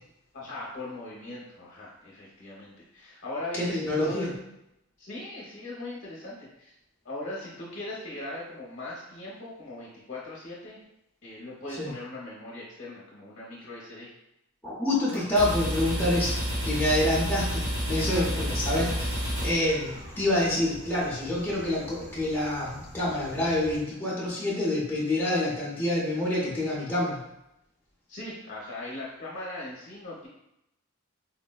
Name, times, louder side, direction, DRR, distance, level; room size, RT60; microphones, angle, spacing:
voice 1, 0.3-4.3 5.0-6.7 7.0-10.8 11.2-14.1 28.1-30.3, left 2 dB, 45° left, -6 dB, 0.7 m, -39 dB
voice 2, 3.6-4.3 11.8-11.9 14.6-16.4 16.6-27.2, left 1 dB, 10° left, -7 dB, 0.6 m, -27 dB
sound 1, 15.1-20.3, equal, 70° right, 1.1 m, -30 dB
sound 2, 18.1-23.8, equal, 35° right, 0.8 m, -47 dB
4.0 x 2.1 x 2.2 m, 0.85 s
head